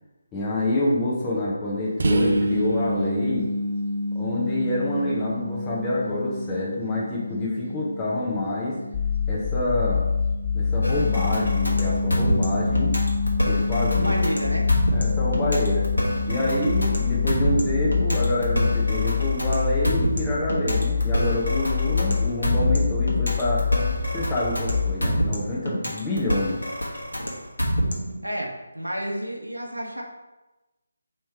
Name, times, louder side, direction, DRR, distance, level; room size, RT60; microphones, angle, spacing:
voice 1, 0.3-3.5 4.1-8.8 9.3-10.0 10.5-12.9 13.5-14.2 14.9-15.9 16.3-23.7 24.1-26.6, left 1 dB, 10° left, -6 dB, 0.7 m, -27 dB
sound 1, 2.0-19.5, equal, 50° right, 0.4 m, -30 dB
sound 2, 8.9-24.9, left 6 dB, 25° left, 1.3 m, -25 dB
sound 3, 10.8-28.2, equal, 75° left, 1.2 m, -27 dB
voice 2, 13.9-14.7 28.2-30.0, equal, 85° right, -1 dB, 1.0 m, -30 dB
3.2 x 3.1 x 4.5 m, 1.1 s
figure-of-eight pair, 150°, 0 cm